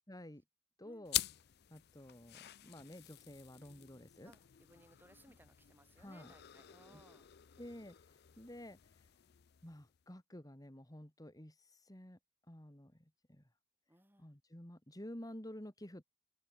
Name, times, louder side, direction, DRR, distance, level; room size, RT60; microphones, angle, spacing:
voice 1, 0.1-0.4 0.8-1.2 1.7-4.3 5.3-5.4 6.0-6.3 6.9-7.0 7.6-9.1 9.6-12.2 12.5-13.4 14.2-16.0, left 1 dB, 20° left, 2.6 m, -51 dB
sound 1, 1.1-10.0, left 15 dB, 55° left, 0.5 m, -46 dB
voice 2, 4.2-7.3 13.9-14.4, right 1 dB, 10° right, 4.9 m, -64 dB
open air
head